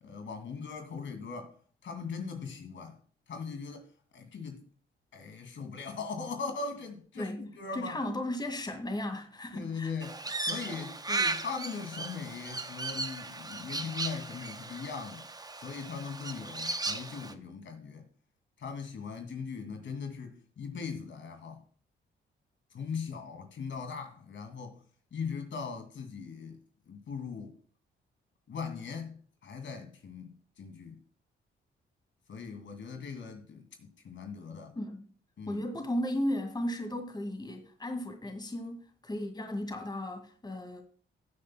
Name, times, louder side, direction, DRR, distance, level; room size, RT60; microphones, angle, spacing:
voice 1, 0.0-1.5 1.8-3.0 3.3-3.8 4.1-4.6 5.1-8.0 9.5-10.1 10.5-15.2 15.6-18.0 18.6-21.6 22.7-24.8 25.1-26.6 26.9-27.5 28.5-30.3 30.6-31.0 32.3-34.7 35.4-35.6, left 5 dB, 65° left, 2.4 m, -40 dB
voice 2, 7.7-9.9 34.8-35.1 35.5-40.8, left 1 dB, 20° left, 2.2 m, -35 dB
Crow, 10.0-17.3, right 3 dB, 20° right, 0.8 m, -36 dB
16.5 x 8.5 x 2.3 m
cardioid pair, 75°, 21 cm